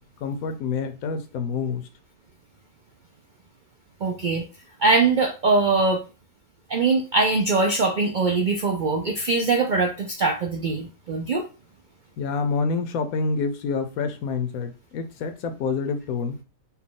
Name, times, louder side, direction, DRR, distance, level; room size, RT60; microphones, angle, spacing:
voice 1, 0.2-1.9 12.2-16.4, left 4 dB, 80° left, 1.1 m, -27 dB
voice 2, 4.0-4.5 4.8-6.0 6.7-11.4, right 3 dB, 80° right, 0.4 m, -22 dB
4.4 x 2.2 x 3.7 m
omnidirectional pair, 1.5 m